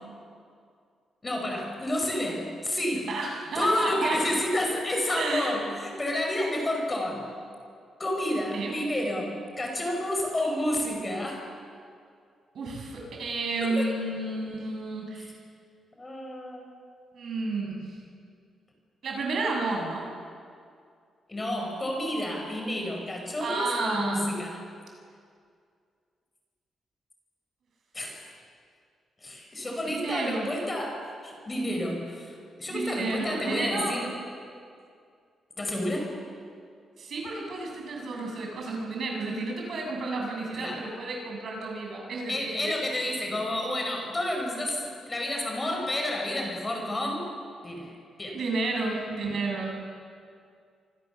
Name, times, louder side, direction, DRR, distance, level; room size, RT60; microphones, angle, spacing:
voice 1, 1.2-3.1 3.5-7.4 8.0-11.5 13.6-13.9 16.0-16.7 21.3-24.6 27.9-28.3 29.2-34.1 35.6-36.1 40.6-40.8 42.3-47.2 47.6-48.4, left 1 dB, 20° left, 2 dB, 4.9 m, -30 dB
voice 2, 3.1-4.2 5.1-5.5 8.5-8.7 12.5-15.3 17.1-17.9 19.0-20.1 23.4-24.2 29.9-30.5 32.7-34.0 37.0-42.8 48.3-49.7, right 3 dB, 55° right, 0 dB, 7.2 m, -31 dB
29.5 x 25.5 x 7.1 m, 2.3 s
wide cardioid pair, 160°, 0 cm